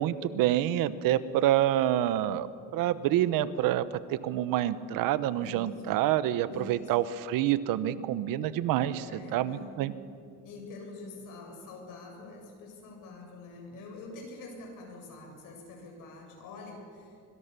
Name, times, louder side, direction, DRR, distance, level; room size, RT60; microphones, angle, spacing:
voice 1, 0.0-2.5 2.7-9.0 9.3-9.9, right 12 dB, 80° right, 14 dB, 1.1 m, -27 dB
voice 2, 5.4-5.9 6.5-6.9 9.0-9.9 10.4-17.2, left 3 dB, 70° left, 1 dB, 7.7 m, -46 dB
25.0 x 23.0 x 6.9 m, 2.3 s
cardioid pair, 130°, 33 cm